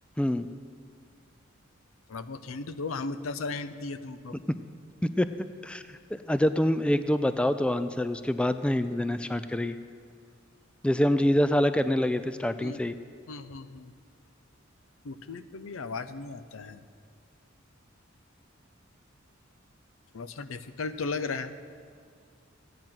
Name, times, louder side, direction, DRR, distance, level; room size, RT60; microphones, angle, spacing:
voice 1, 0.2-0.5 5.0-5.3 5.6-9.8 10.8-13.0, left 1 dB, 5° left, 11 dB, 0.3 m, -26 dB
voice 2, 2.1-4.4 12.6-12.8 13.3-13.9 15.0-16.8 20.1-21.5, left 4 dB, 85° left, 11 dB, 0.6 m, -36 dB
15.5 x 9.3 x 5.9 m, 2.1 s
head